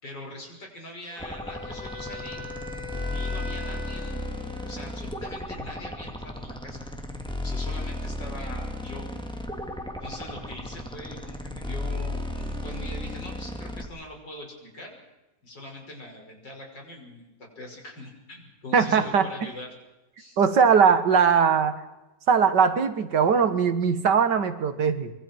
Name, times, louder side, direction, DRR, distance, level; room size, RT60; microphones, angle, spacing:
voice 1, 0.0-2.5 2.9-4.2 4.6-6.8 7.4-9.1 10.0-14.9 15.4-19.7 20.2-20.4, left 1 dB, 75° left, 0 dB, 6.6 m, -42 dB
Wind instrument woodwind instrument, 1.1-5.2, left 3 dB, 35° left, 4.2 m, -40 dB
sound 1, 1.2-13.9, left 1 dB, 5° left, 1.7 m, -34 dB
voice 2, 18.7-19.3 20.4-21.8 22.3-25.1, right 6 dB, 75° right, 9 dB, 2.1 m, -20 dB
25.0 x 24.0 x 4.6 m, 1.0 s
omnidirectional pair, 1.9 m